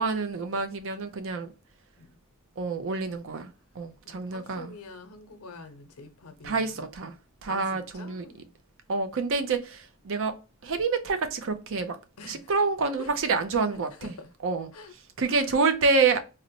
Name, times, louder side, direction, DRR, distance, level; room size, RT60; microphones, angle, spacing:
voice 1, 0.0-1.5 2.6-4.7 6.4-7.2 7.4-8.3 8.9-10.4 10.6-12.0 12.3-14.1 14.4-14.7 15.2-16.2, right 4 dB, 65° right, 0.5 m, -27 dB
voice 2, 4.0-6.8 7.5-8.5 12.2-12.5 13.0-13.1 13.7-14.3 14.7-14.9 15.3-15.5, left 3 dB, 75° left, 0.7 m, -46 dB
3.9 x 2.1 x 2.8 m
head